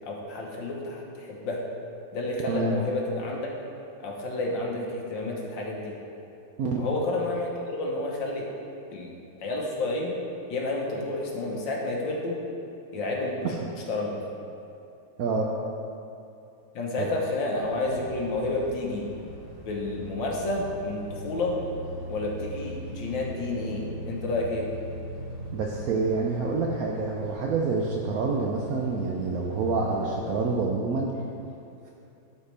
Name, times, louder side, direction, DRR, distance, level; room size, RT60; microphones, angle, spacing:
voice 1, 0.0-1.6 2.1-3.5 4.0-5.9 6.8-8.5 8.9-9.2 9.4-10.1 10.5-12.4 12.9-13.4 13.9-14.2 16.8-19.1 19.7-21.5 22.1-24.6, left 2 dB, 75° left, -2 dB, 1.7 m, -30 dB
voice 2, 2.5-2.8 6.6-6.8 15.2-15.5 17.0-17.1 25.5-31.1, right 4 dB, 75° right, -1 dB, 0.8 m, -27 dB
sound 1, 17.5-30.5, equal, 30° right, 1.8 m, -40 dB
12.0 x 4.4 x 3.3 m, 2.7 s
omnidirectional pair, 2.1 m